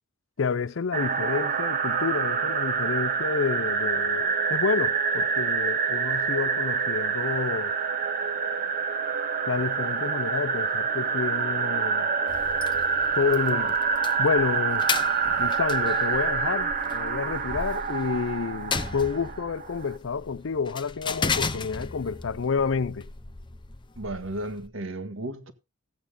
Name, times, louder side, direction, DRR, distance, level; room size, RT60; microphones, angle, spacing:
voice 1, 0.4-7.8 9.5-12.1 13.2-13.8 14.2-14.9 15.4-23.1, left 5 dB, 70° left, 0.5 m, -29 dB
sound 1, 0.9-19.9, right 5 dB, 45° right, 1.0 m, -27 dB
sound 2, 12.3-24.7, left 4 dB, 25° left, 0.7 m, -35 dB
voice 2, 23.9-25.5, right 1 dB, 75° right, 1.8 m, -34 dB
15.5 x 8.4 x 3.8 m
head